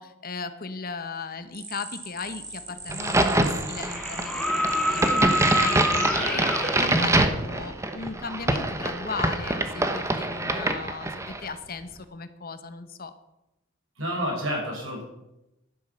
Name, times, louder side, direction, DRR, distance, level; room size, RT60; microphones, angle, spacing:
voice 1, 0.0-13.1, left 4 dB, 50° left, 11 dB, 1.0 m, -37 dB
sound 1, 1.5-7.4, right 3 dB, 35° right, 3.1 m, -37 dB
sound 2, 2.7-2.8 3.8-7.0 8.8-8.9, equal, 5° left, 1.5 m, -27 dB
Crack, 2.9-11.5, right 1 dB, 15° right, 1.0 m, -25 dB
voice 2, 14.0-15.0, equal, 85° right, 0 dB, 5.8 m, -29 dB
11.5 x 10.5 x 6.8 m, 0.93 s
head